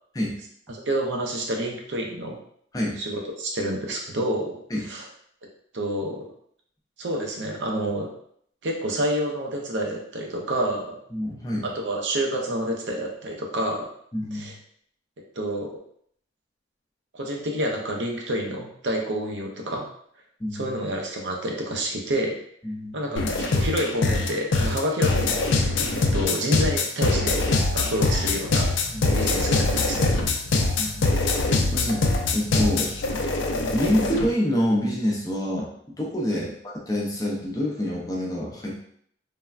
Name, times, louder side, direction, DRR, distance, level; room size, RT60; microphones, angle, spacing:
voice 1, 0.7-2.4 3.0-4.6 4.9-5.1 5.7-6.3 7.0-8.1 8.6-11.0 11.7-13.9 14.3-14.5 15.4-15.8 17.1-19.9 20.5-22.4 22.9-25.7 25.9-28.7 29.1-30.1 36.3-36.5, right 1 dB, 75° right, 0 dB, 0.6 m, -28 dB
voice 2, 11.1-11.6 14.1-14.5 20.4-20.7 22.6-23.0 28.9-29.2 30.8-31.4 31.7-33.3 33.7-35.7 36.0-38.7, equal, 20° left, -3 dB, 0.5 m, -27 dB
sound 1, 23.2-34.3, left 3 dB, 85° left, 0.4 m, -23 dB
3.3 x 2.1 x 2.4 m, 0.66 s
head